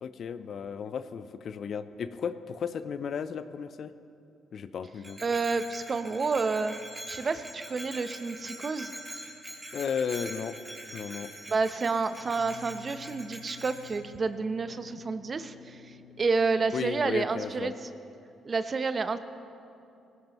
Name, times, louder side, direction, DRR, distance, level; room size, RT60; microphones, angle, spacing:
voice 1, 0.0-3.9 4.5-5.2 9.7-10.6 10.9-11.3 15.0-15.1 16.7-17.7, left 7 dB, 60° left, 12 dB, 0.6 m, -34 dB
Bell, 5.0-14.0, right 1 dB, 15° right, 3.4 m, -44 dB
voice 2, 5.2-6.7 7.1-8.9 11.5-17.7 18.5-19.2, right 4 dB, 40° right, 11 dB, 0.7 m, -29 dB
Dist Chr B Mid-G, 12.2-17.4, left 7 dB, 80° right, 2.2 m, -52 dB
19.0 x 16.5 x 3.0 m, 2.7 s
supercardioid pair, 60°, 0 cm